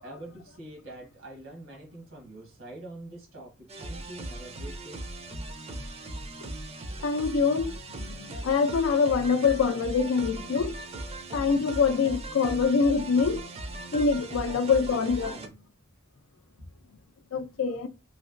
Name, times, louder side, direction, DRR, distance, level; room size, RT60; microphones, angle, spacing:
voice 1, 0.0-5.0 14.2-14.4 14.9-15.6 16.6-16.7, right 1 dB, 80° right, 1.3 m, -45 dB
sound 1, 3.7-15.5, right 2 dB, 30° right, 0.5 m, -38 dB
voice 2, 7.0-10.7 11.3-13.4 13.9-15.3 17.3-17.9, left 5 dB, 85° left, 0.4 m, -25 dB
3.2 x 2.8 x 2.5 m
head